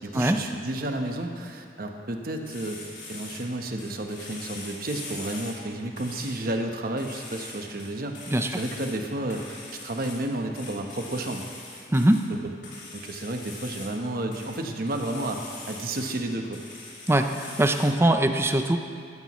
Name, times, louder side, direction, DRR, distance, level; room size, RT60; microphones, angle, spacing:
voice 1, 0.0-2.8 3.1-8.2 8.6-11.4 12.9-16.6, right 1 dB, 55° right, 4 dB, 1.0 m, -31 dB
sound 1, 2.4-3.5 3.8-5.6 6.0-6.4 7.0-7.9 8.1-9.0 9.3-10.2 10.5-12.2 12.6-13.9 14.3-16.2 16.5-17.9, left 3 dB, 80° left, 3.5 m, -42 dB
voice 2, 17.1-18.8, right 1 dB, 15° right, 6 dB, 0.6 m, -21 dB
15.5 x 13.0 x 3.1 m, 2.3 s
head